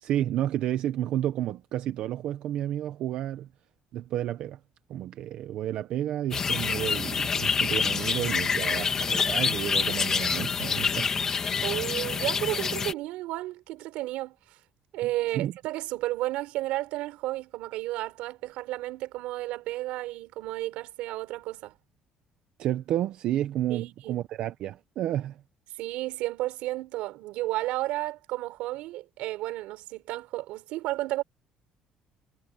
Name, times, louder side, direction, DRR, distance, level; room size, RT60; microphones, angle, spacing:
voice 1, 0.0-3.5 3.9-4.6 4.9-11.2 15.3-15.5 22.6-25.4, right 12 dB, 55° right, 0.9 m, -31 dB
sound 1, 6.3-12.9, left 5 dB, 25° left, 1.9 m, -27 dB
voice 2, 11.6-14.6 14.9-21.8 23.7-24.2 25.8-31.2, right 17 dB, 85° right, 4.3 m, -32 dB
cardioid pair, 165°, 2 cm